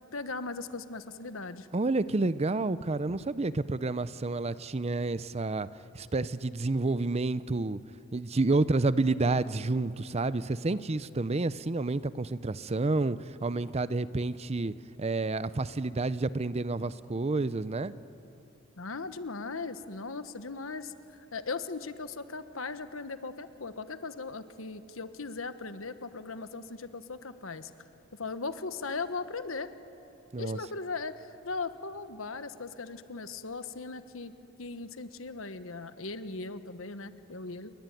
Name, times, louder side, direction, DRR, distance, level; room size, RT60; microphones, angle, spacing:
voice 1, 0.1-1.7 18.8-27.7 28.2-29.7 30.4-34.3 34.6-37.7, left 4 dB, 85° left, 11 dB, 1.3 m, -38 dB
voice 2, 1.7-5.7 5.9-7.8 8.1-14.7 15.0-17.9 30.3-30.6, right 3 dB, 30° right, 16 dB, 0.6 m, -29 dB
29.5 x 22.0 x 9.2 m, 2.9 s
head